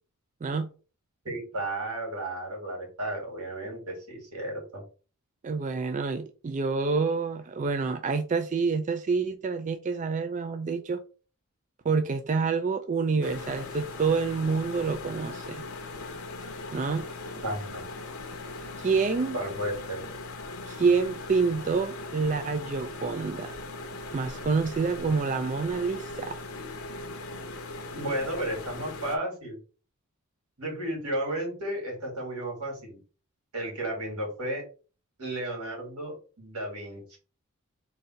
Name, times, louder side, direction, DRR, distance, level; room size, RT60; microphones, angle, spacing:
voice 1, 0.4-0.7 5.4-11.0 11.8-15.6 16.7-17.1 18.8-19.4 20.7-23.6 24.1-26.4, right 4 dB, 35° right, 0.3 m, -27 dB
voice 2, 1.2-4.8 17.4-17.9 19.3-20.0 27.9-29.6 30.6-33.0 33.5-34.6 35.2-37.2, right 1 dB, 85° right, 2.5 m, -33 dB
sound 1, 13.2-29.2, left 2 dB, 70° left, 0.8 m, -39 dB
4.0 x 2.7 x 4.4 m
head